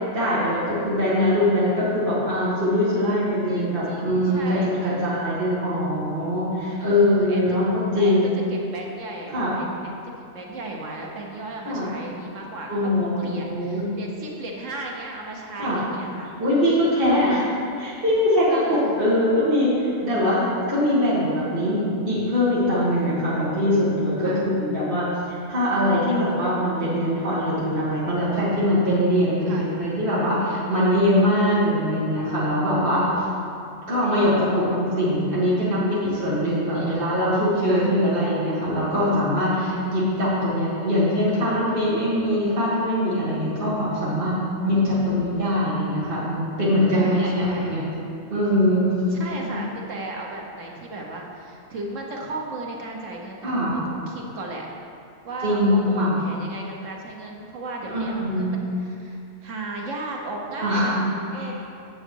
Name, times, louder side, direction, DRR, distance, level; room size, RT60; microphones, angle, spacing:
voice 1, 0.1-8.3 9.3-9.5 11.7-11.9 12.7-13.9 15.6-15.8 16.4-17.4 17.8-20.4 20.7-33.2 33.9-44.4 44.6-47.8 48.3-49.1 49.4-49.6 53.4-53.8 55.4-56.2 57.9-58.6 60.6-61.5, left 1 dB, 45° right, -9 dB, 2.2 m, -22 dB
voice 2, 3.5-5.0 6.8-7.4 7.9-8.2 8.5-10.0 10.3-16.3 17.1-17.3 18.5-19.0 24.2-24.5 29.5-29.7 36.7-37.0 37.7-37.9 39.9-40.1 44.8-45.0 46.9-47.7 49.1-54.7 55.2-61.5, right 2 dB, 80° right, 0 dB, 1.4 m, -35 dB
9.0 x 7.8 x 4.6 m, 2.5 s
omnidirectional pair, 1.3 m